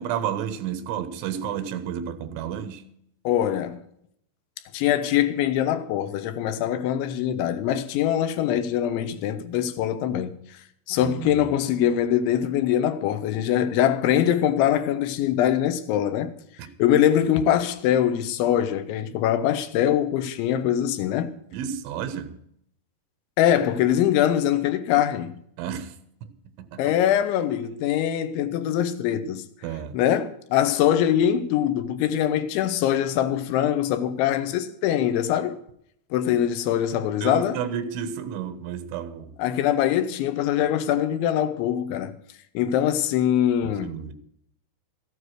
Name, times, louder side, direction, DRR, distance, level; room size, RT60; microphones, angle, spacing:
voice 1, 0.0-2.9 11.0-11.4 16.6-16.7 21.5-22.4 25.6-26.0 26.2-26.3 26.6-27.0 29.6-30.0 37.2-39.3 43.8-44.1, right 8 dB, 85° right, 3.6 m, -31 dB
voice 2, 3.2-3.8 4.7-10.6 10.9-16.3 16.8-21.3 23.4-25.4 26.8-29.4 29.9-35.6 36.1-37.6 39.4-42.1 42.5-43.9, left 10 dB, 85° left, 3.3 m, -23 dB
14.5 x 9.5 x 6.5 m
omnidirectional pair, 5.3 m